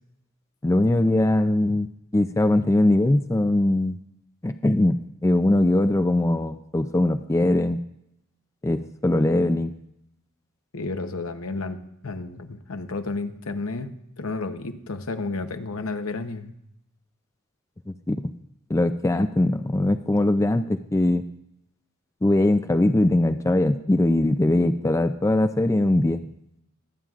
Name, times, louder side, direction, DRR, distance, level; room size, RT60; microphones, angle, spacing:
voice 1, 0.6-1.9 2.1-4.0 4.4-7.8 8.6-9.8 17.9-18.2 18.7-21.3 22.2-26.2, left 1 dB, 15° left, 9 dB, 0.3 m, -21 dB
voice 2, 10.7-16.5, left 3 dB, 75° left, 8 dB, 0.9 m, -32 dB
23.5 x 9.0 x 2.4 m, 0.79 s
head